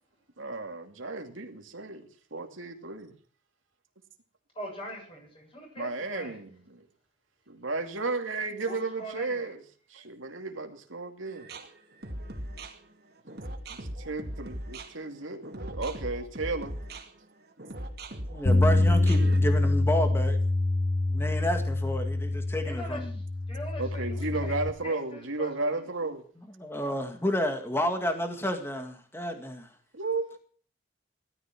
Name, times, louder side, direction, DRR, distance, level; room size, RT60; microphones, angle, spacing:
voice 1, 0.4-3.1 5.8-6.8 7.5-9.6 9.9-11.5 13.7-16.8 23.8-26.2 29.9-30.4, right 3 dB, 85° right, 2.6 m, -34 dB
voice 2, 4.6-6.4 8.6-9.5 22.6-23.2 23.5-24.5 24.8-25.8, equal, 25° left, 7.3 m, -42 dB
sound 1, 11.2-19.4, right 1 dB, 50° right, 2.7 m, -39 dB
voice 3, 18.3-20.4 21.1-23.2 26.6-29.7, equal, 10° left, 2.0 m, -30 dB
Bass guitar, 18.5-24.7, left 2 dB, 45° left, 1.7 m, -25 dB
17.0 x 13.0 x 6.1 m
head